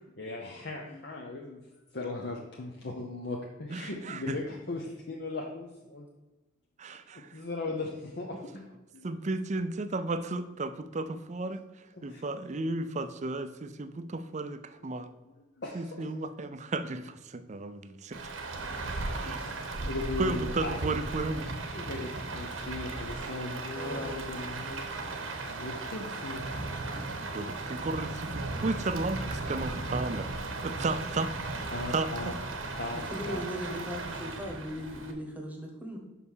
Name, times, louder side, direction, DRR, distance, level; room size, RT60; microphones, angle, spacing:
voice 1, 0.1-6.1 7.3-8.6 8.9-9.1 12.1-12.2 14.9-15.0 15.2-16.1 18.6-20.9 21.7-27.1 31.7-32.3 32.8-33.4, left 2 dB, 55° left, 0 dB, 0.8 m, -38 dB
voice 2, 3.7-4.4 6.8-7.4 9.0-11.6 12.0-15.1 15.7-18.3 19.2-19.4 20.2-21.5 27.2-31.3 31.9-32.1, right 3 dB, 35° right, 11 dB, 0.5 m, -34 dB
Rain, 18.1-35.1, right 2 dB, 85° right, 1.1 m, -36 dB
voice 3, 23.8-24.1 32.9-36.0, equal, 10° right, 1 dB, 1.2 m, -38 dB
5.7 x 5.4 x 6.2 m, 1.1 s
head